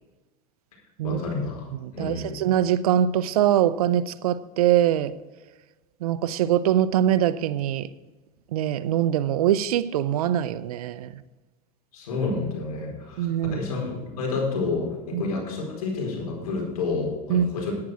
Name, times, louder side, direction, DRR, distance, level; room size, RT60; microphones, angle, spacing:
voice 1, 1.0-2.4 11.9-17.7, left 3 dB, 85° left, 0 dB, 4.5 m, -29 dB
voice 2, 1.8-5.1 6.0-7.9 8.5-11.1 13.2-13.6 15.1-15.2 17.3-17.5, right 11 dB, 85° right, 15 dB, 0.7 m, -23 dB
10.5 x 9.6 x 4.9 m, 1.2 s
supercardioid pair, 105°, 18 cm